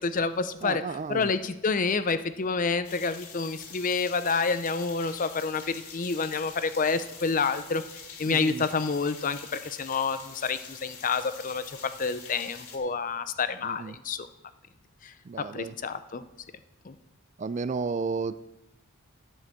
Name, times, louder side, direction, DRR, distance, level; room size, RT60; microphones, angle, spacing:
voice 1, 0.0-0.8 1.1-7.8 8.2-14.3 15.0-16.2 16.9-17.0, left 4 dB, 35° left, 12 dB, 0.5 m, -28 dB
voice 2, 0.6-1.3 8.3-8.6 13.6-14.0 15.3-15.8 17.4-18.3, right 4 dB, 35° right, 14 dB, 0.3 m, -32 dB
sound 1, 2.8-12.8, left 6 dB, 85° left, 2.1 m, -45 dB
11.0 x 6.5 x 7.3 m, 0.92 s
head